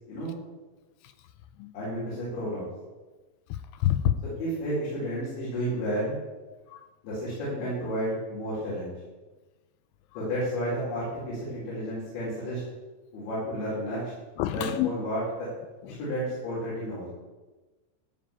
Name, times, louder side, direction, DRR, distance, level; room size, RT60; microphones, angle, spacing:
voice 1, 1.7-2.7 4.4-6.2 7.0-8.9 10.1-12.6 13.1-14.0 14.4-15.5 16.0-17.1, equal, 65° left, -9 dB, 6.5 m, -31 dB
voice 2, 3.5-4.2 6.7-6.8 14.4-14.9 15.9-16.0, left 12 dB, 85° left, 10 dB, 2.9 m, -27 dB
15.0 x 5.4 x 8.6 m, 1.2 s
omnidirectional pair, 5.6 m